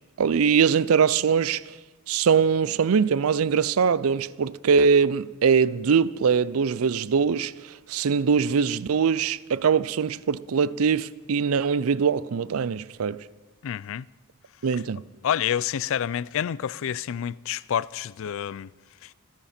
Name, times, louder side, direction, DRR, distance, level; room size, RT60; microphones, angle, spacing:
voice 1, 0.2-1.6 2.1-13.2 14.6-15.0, right 6 dB, 75° right, 0.5 m, -22 dB
voice 2, 13.6-14.1 15.2-18.7 19.0-19.1, left 9 dB, 65° left, 0.4 m, -28 dB
27.5 x 10.5 x 4.3 m
head